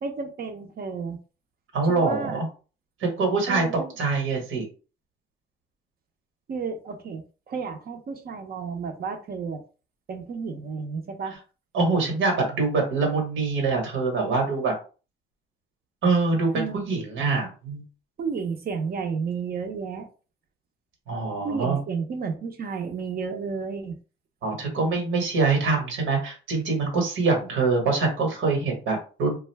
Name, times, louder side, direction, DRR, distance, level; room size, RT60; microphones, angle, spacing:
voice 1, 0.0-1.2 1.9-2.4 3.5-3.9 6.5-9.6 10.1-11.4 16.5-16.9 18.2-20.1 21.4-24.0, right 5 dB, 50° right, 0.7 m, -32 dB
voice 2, 1.7-2.4 3.0-4.6 11.7-14.7 16.0-17.8 21.1-21.8 24.4-29.4, right 3 dB, 90° right, 1.3 m, -24 dB
2.4 x 2.3 x 3.3 m
cardioid pair, 90°, 20 cm